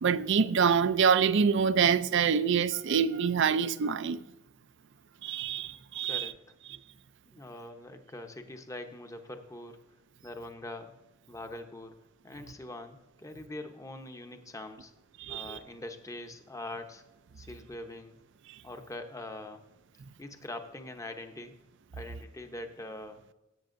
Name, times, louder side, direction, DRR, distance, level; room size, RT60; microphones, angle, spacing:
voice 1, 0.0-4.2 5.2-6.3 15.2-15.6, right 6 dB, 60° right, 0.5 m, -26 dB
voice 2, 5.7-6.4 7.3-9.8 10.2-10.9 11.3-11.9 12.2-14.9 15.3-17.0 17.4-18.2 18.6-19.6 20.2-21.5 21.9-23.2, left 1 dB, 15° left, 0.8 m, -43 dB
17.0 x 8.3 x 2.6 m
head